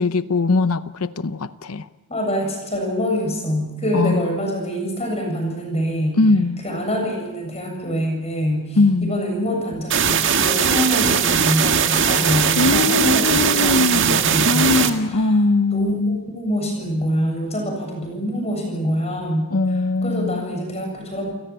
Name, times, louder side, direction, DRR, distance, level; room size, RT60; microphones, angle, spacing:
voice 1, 0.0-1.9 3.9-4.4 6.2-6.6 8.8-9.2 12.6-16.2 19.5-20.5, left 3 dB, 70° left, 14 dB, 0.8 m, -20 dB
voice 2, 2.1-6.2 6.6-14.8 15.1-15.2 15.7-19.5 20.0-21.3, equal, 30° left, 2 dB, 7.4 m, -25 dB
sound 1, 9.9-14.9, right 7 dB, 55° right, 1.9 m, -19 dB
30.0 x 17.5 x 8.8 m, 1.1 s
head